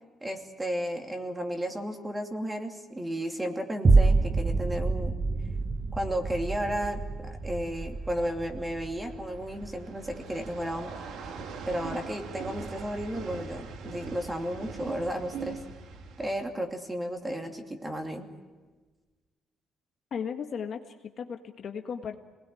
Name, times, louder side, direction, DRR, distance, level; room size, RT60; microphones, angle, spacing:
voice 1, 0.2-5.1 5.9-10.9 11.7-15.6 16.2-18.3, equal, 10° right, 4 dB, 2.7 m, -33 dB
sound 1, 3.8-12.4 12.9-13.0, right 3 dB, 30° right, 0.9 m, -28 dB
sound 2, 5.6-16.4, right 5 dB, 75° right, 2.4 m, -42 dB
voice 2, 20.1-22.2, left 7 dB, 50° left, 5 dB, 1.6 m, -36 dB
27.0 x 20.0 x 9.4 m, 1.3 s
cardioid pair, 145°, 0 cm